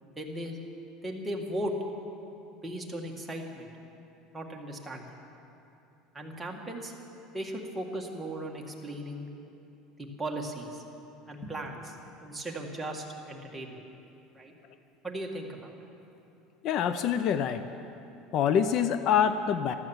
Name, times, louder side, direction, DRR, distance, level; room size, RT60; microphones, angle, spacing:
voice 1, 0.2-0.6 1.0-1.8 2.6-3.7 4.3-5.2 6.1-6.9 7.3-9.3 10.0-10.8 11.3-12.0 12.2-13.8 14.4-14.5 15.0-15.7, right 1 dB, 10° right, 0 dB, 1.8 m, -37 dB
voice 2, 16.6-17.6 18.3-19.7, left 8 dB, 50° left, 11 dB, 0.6 m, -25 dB
14.0 x 12.5 x 7.3 m, 2.8 s
supercardioid pair, 130°, 0 cm